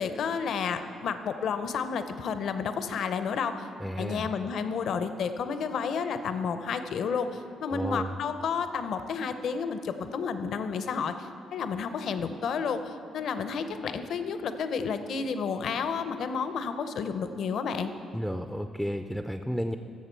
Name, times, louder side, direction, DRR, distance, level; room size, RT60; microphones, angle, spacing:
voice 1, 0.0-3.7 4.0-17.9, left 6 dB, 70° left, 9 dB, 0.6 m, -31 dB
voice 2, 3.8-4.3 7.7-8.1 18.1-19.8, equal, ahead, 8 dB, 0.4 m, -32 dB
14.5 x 6.6 x 4.5 m, 2.9 s
cardioid pair, 90°, 0 cm